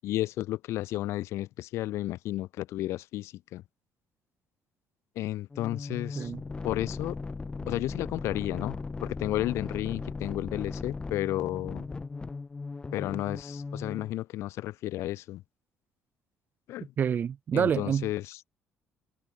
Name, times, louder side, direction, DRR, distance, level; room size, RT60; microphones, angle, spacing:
voice 1, 0.0-3.6 5.2-6.3 6.6-7.2 7.7-11.9 12.9-15.4 16.7-16.9 17.5-18.4, left 15 dB, 75° left, 7.5 m, -32 dB
sound 1, 5.5-14.1, left 4 dB, 20° left, 2.7 m, -38 dB
voice 2, 5.9-6.4 17.0-18.1, right 8 dB, 40° right, 1.9 m, -28 dB
cardioid pair, 130°, 5 cm